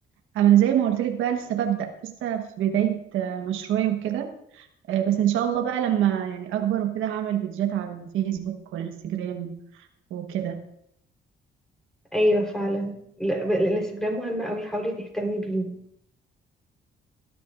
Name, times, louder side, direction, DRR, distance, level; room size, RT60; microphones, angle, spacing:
voice 1, 0.3-9.6 10.1-10.6, right 11 dB, 90° right, 4 dB, 1.3 m, -25 dB
voice 2, 12.1-15.7, equal, 5° left, 1 dB, 3.8 m, -26 dB
18.5 x 11.0 x 2.5 m, 0.73 s
cardioid pair, 90°, 20 cm